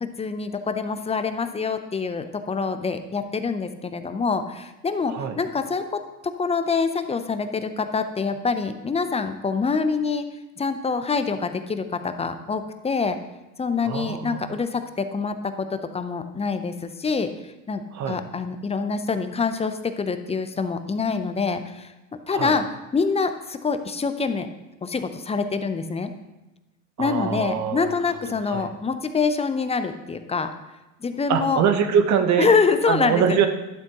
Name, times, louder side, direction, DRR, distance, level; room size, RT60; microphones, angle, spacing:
voice 1, 0.0-10.3 10.6-13.2 13.6-21.9 22.3-22.7 22.9-24.5 24.8-26.1 27.0-30.5 31.0-31.6 32.4-33.4, left 5 dB, 15° left, 9 dB, 0.6 m, -25 dB
voice 2, 13.8-14.6 17.9-18.2 22.3-22.5 27.0-27.9 28.5-28.7 31.3-32.5 32.9-33.5, right 7 dB, 45° right, 8 dB, 1.0 m, -23 dB
12.0 x 7.4 x 3.0 m, 1.0 s
hypercardioid pair, 85°, 38 cm